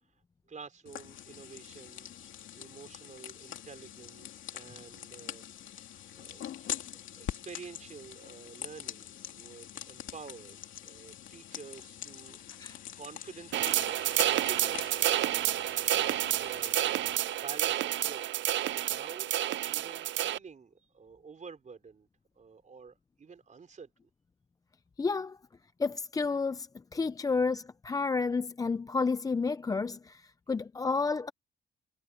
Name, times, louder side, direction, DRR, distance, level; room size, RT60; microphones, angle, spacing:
voice 1, 0.5-6.6 6.9-15.6 15.9-17.1 17.4-22.1 22.3-23.9, right 5 dB, 40° right, 4.0 m, -50 dB
sound 1, 0.9-17.2, left 11 dB, 90° left, 2.7 m, -44 dB
Coin (dropping), 11.5-17.0, left 6 dB, 50° left, 4.6 m, -58 dB
sound 2, 13.5-20.4, right 13 dB, 70° right, 0.5 m, -29 dB
voice 2, 25.0-25.4 25.8-31.3, left 4 dB, 20° left, 0.4 m, -31 dB
cardioid pair, 115°, 20 cm